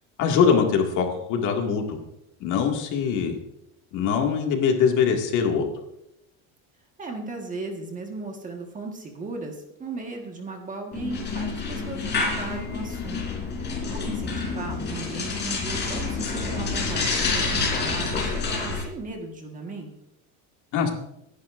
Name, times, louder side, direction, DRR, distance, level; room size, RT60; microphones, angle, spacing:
voice 1, 0.2-2.0 2.4-3.4 3.9-5.7 20.7-20.9, left 6 dB, 50° left, 2 dB, 2.2 m, -22 dB
voice 2, 7.0-19.9, right 3 dB, 20° right, 2 dB, 1.5 m, -37 dB
sound 1, 10.9-18.8, left 4 dB, 30° left, 4.0 m, -28 dB
24.5 x 10.5 x 2.6 m, 0.82 s
cardioid pair, 150°, 37 cm